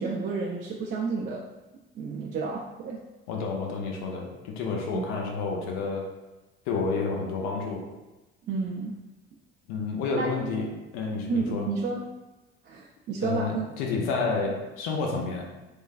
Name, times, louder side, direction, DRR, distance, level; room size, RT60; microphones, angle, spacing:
voice 1, 0.0-1.4 1.9-3.0 4.9-5.1 8.5-9.0 10.2-10.3 11.3-12.1 12.6-13.7, right 4 dB, 35° right, -3 dB, 0.4 m, -31 dB
voice 2, 3.3-6.0 6.7-7.8 9.7-11.7 13.2-15.4, left 4 dB, 70° left, 0 dB, 0.6 m, -30 dB
3.1 x 2.2 x 2.4 m, 1.1 s
hypercardioid pair, 55°, 30 cm